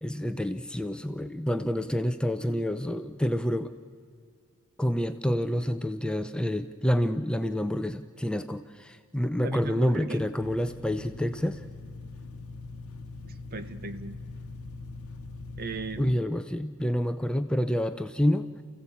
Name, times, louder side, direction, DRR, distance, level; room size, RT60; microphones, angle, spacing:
voice 1, 0.0-3.7 4.8-11.6 16.0-18.6, equal, 5° left, 9 dB, 0.6 m, -28 dB
voice 2, 9.4-10.3 13.2-14.2 15.6-16.3, right 2 dB, 45° right, 11 dB, 1.1 m, -36 dB
sound 1, 10.4-16.1, left 3 dB, 85° left, 0.9 m, -42 dB
28.0 x 16.0 x 8.5 m, 2.2 s
head